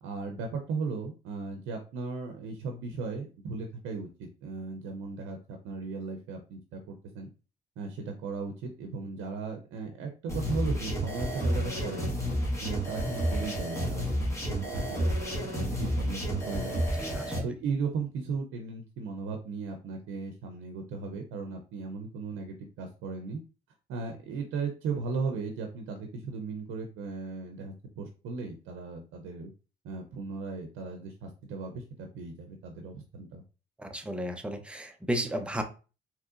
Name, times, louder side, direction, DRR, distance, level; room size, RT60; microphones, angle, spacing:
voice 1, 0.0-7.3 7.8-12.1 12.6-15.1 15.4-16.8 17.3-23.4 23.9-29.5 29.8-33.4, right 4 dB, 85° right, 4 dB, 0.6 m, -36 dB
sound 1, 10.3-17.4, equal, 15° left, 1.5 m, -30 dB
voice 2, 17.0-17.4 33.8-35.6, right 1 dB, 5° right, 6 dB, 0.6 m, -33 dB
3.6 x 2.9 x 2.4 m, 0.34 s
cardioid pair, 90°, 20 cm